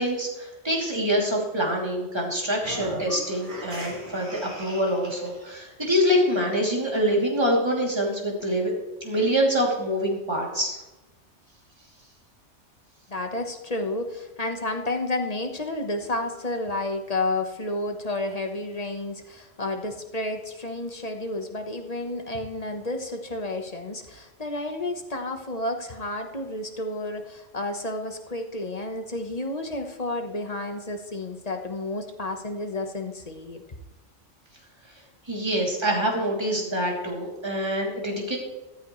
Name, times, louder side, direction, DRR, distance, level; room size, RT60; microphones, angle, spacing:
voice 1, 0.0-8.7 9.0-10.8 35.3-38.4, equal, 20° right, -2 dB, 3.0 m, -25 dB
sound 1, 2.5-5.5, equal, 40° right, 3.4 m, -38 dB
voice 2, 13.1-33.6, left 2 dB, 35° left, 4 dB, 1.2 m, -31 dB
14.5 x 14.0 x 3.2 m, 1.1 s
omnidirectional pair, 1.3 m